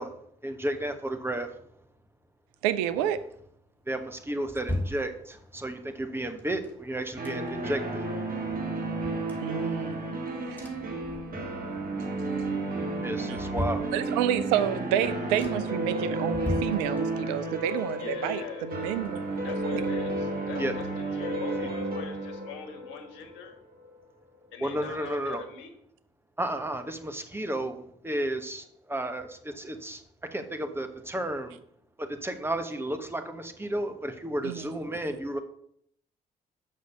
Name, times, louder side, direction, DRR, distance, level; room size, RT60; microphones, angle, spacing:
voice 1, 0.4-1.6 3.9-8.6 9.6-10.1 13.0-13.9 20.6-20.8 24.6-25.4 26.4-31.6 32.0-35.4, right 1 dB, 10° right, 7 dB, 1.3 m, -33 dB
voice 2, 2.6-3.2 9.4-10.0 10.5-10.6 13.9-18.4 18.7-19.2 19.7-19.9 34.4-34.6, right 11 dB, 75° right, 13 dB, 0.6 m, -29 dB
sound 1, 3.9-5.7 6.4-7.8 8.2-8.3 8.5-10.1 10.5-11.7 12.0-12.5 13.0-14.5 14.9-15.0 15.4-15.8 16.3-17.5 17.8-19.6 19.9-20.0, left 1 dB, 10° left, 2.8 m, -38 dB
sound 2, 7.2-23.9, right 2 dB, 45° right, 2.0 m, -32 dB
voice 3, 18.0-18.7 19.4-23.5 24.5-25.7, left 7 dB, 70° left, 7 dB, 1.4 m, -42 dB
6.2 x 5.5 x 6.8 m, 0.68 s
hypercardioid pair, 50°, 20 cm